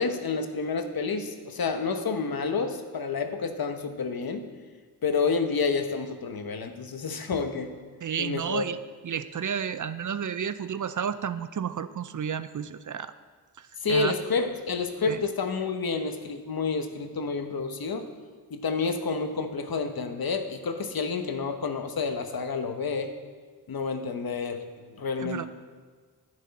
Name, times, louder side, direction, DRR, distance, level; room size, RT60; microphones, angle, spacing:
voice 1, 0.0-4.5 5.0-7.7 8.2-8.6 13.8-18.1 18.5-23.1 23.7-25.5, left 4 dB, 60° left, 7 dB, 1.1 m, -29 dB
voice 2, 8.0-8.8 9.0-13.1 13.6-14.1 15.1-15.2 25.2-25.5, right 7 dB, 50° right, 13 dB, 0.5 m, -32 dB
10.5 x 10.0 x 4.2 m, 1.5 s
wide cardioid pair, 80°, 40 cm